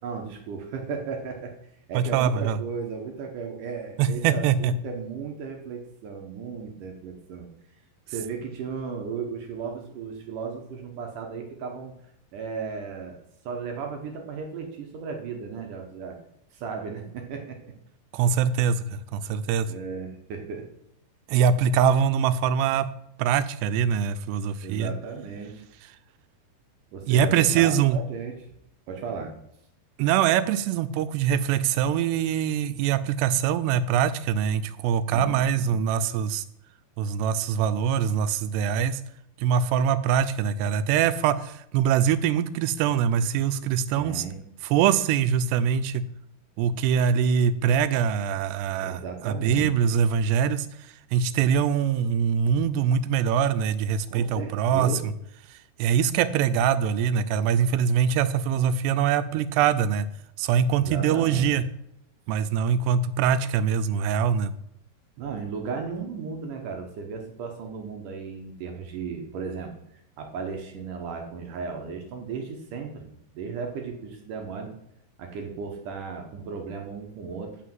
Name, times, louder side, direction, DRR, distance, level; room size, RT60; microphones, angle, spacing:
voice 1, 0.0-1.5 1.9-7.5 8.1-11.9 12.3-13.2 13.4-16.2 16.5-17.6 19.7-20.7 24.6-25.6 26.9-28.3 28.9-29.3 35.1-35.8 44.0-44.4 48.8-49.7 54.1-55.1 60.8-61.5 65.2-74.7 75.2-77.6, right 5 dB, 65° right, 3 dB, 2.2 m, -35 dB
voice 2, 1.9-2.6 4.0-4.7 18.1-19.7 21.3-22.9 23.2-24.9 27.1-28.0 30.0-36.4 37.0-39.0 39.4-44.2 44.6-46.0 46.6-50.7 51.1-54.9 55.8-60.1 60.4-61.6 62.3-64.5, right 8 dB, 90° right, 12 dB, 2.8 m, -23 dB
8.4 x 6.1 x 7.5 m, 0.77 s
omnidirectional pair, 4.7 m